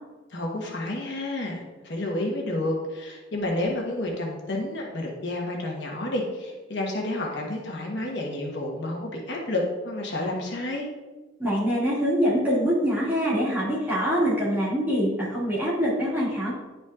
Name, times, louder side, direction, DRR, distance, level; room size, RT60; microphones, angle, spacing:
voice 1, 0.3-10.9, left 1 dB, 60° left, -1 dB, 1.2 m, -30 dB
voice 2, 11.4-16.5, equal, 10° right, -7 dB, 2.2 m, -24 dB
10.5 x 5.2 x 2.4 m, 1.2 s
head